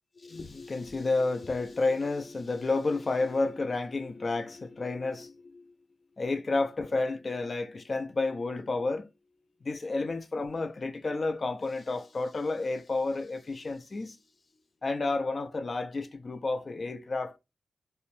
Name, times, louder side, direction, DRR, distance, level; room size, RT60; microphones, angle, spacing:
voice 1, 0.2-5.6 6.2-9.1 9.6-14.2 14.8-17.4, left 3 dB, 35° left, 0.3 m, -31 dB
2.7 x 2.1 x 2.9 m
wide cardioid pair, 165°, 0 cm